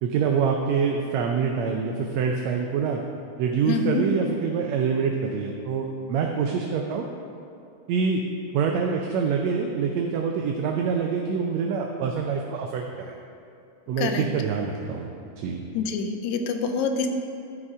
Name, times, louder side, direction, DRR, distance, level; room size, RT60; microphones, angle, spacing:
voice 1, 0.0-3.0 3.4-7.1 7.9-8.2 8.5-13.2 13.9-15.1 15.4-15.6, right 6 dB, 75° right, 2 dB, 1.7 m, -25 dB
voice 2, 3.7-4.0 14.0-14.2 15.7-17.1, left 5 dB, 80° left, 5 dB, 1.9 m, -26 dB
12.5 x 4.9 x 4.9 m, 2.5 s
omnidirectional pair, 3.3 m